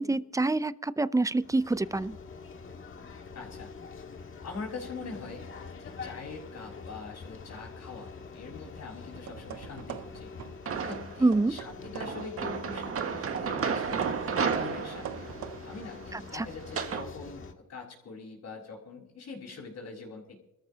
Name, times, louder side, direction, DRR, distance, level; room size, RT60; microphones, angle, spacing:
voice 1, 0.0-2.2 11.2-11.5 16.3-16.5, right 2 dB, 10° right, 17 dB, 0.5 m, -26 dB
sound 1, 1.4-17.5, left 4 dB, 45° left, 1.8 m, -45 dB
voice 2, 3.3-3.7 4.4-10.3 10.8-14.0 14.3-15.3 15.6-17.4 17.7-20.4, left 4 dB, 60° left, -5 dB, 5.2 m, -43 dB
sound 2, 9.1-10.6 10.9-12.3 12.7-15.6, right 10 dB, 65° right, 0.9 m, -43 dB
sound 3, 10.7-11.3 12.0-17.1, right 6 dB, 50° right, 1.6 m, -33 dB
26.0 x 14.0 x 2.8 m, 0.91 s
cardioid pair, 90°, 30 cm